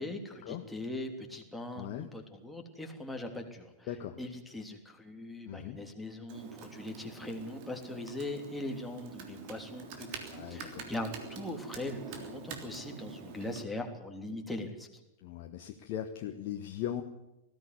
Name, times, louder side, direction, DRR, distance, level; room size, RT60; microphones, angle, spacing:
voice 1, 0.0-3.9 4.2-14.9, left 1 dB, 5° left, 2 dB, 3.2 m, -40 dB
voice 2, 1.7-2.1 3.9-4.2 5.4-5.8 10.3-10.9 15.2-17.0, left 10 dB, 45° left, 4 dB, 1.5 m, -39 dB
Computer keyboard, 6.3-13.6, right 5 dB, 45° right, 3.4 m, -45 dB
20.0 x 14.5 x 9.7 m, 0.94 s
figure-of-eight pair, 90°, 0 cm